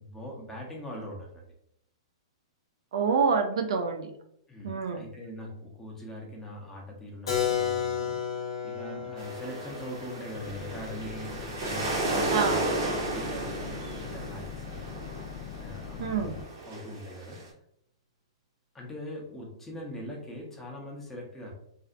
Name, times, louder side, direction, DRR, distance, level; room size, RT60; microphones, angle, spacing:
voice 1, 0.0-1.5 4.5-14.9 15.6-17.4 18.7-21.5, equal, 10° left, -2 dB, 0.7 m, -42 dB
voice 2, 2.9-4.1 4.6-5.0 12.3-12.6 16.0-16.3, right 5 dB, 70° right, 6 dB, 0.4 m, -27 dB
Keyboard (musical), 7.3-12.9, left 9 dB, 80° left, 0.8 m, -34 dB
sound 1, 9.2-17.4, right 2 dB, 55° right, 0.8 m, -33 dB
sound 2, 10.3-16.4, left 7 dB, 50° left, 0.3 m, -42 dB
2.5 x 2.0 x 2.5 m, 0.72 s
hypercardioid pair, 130°, 3 cm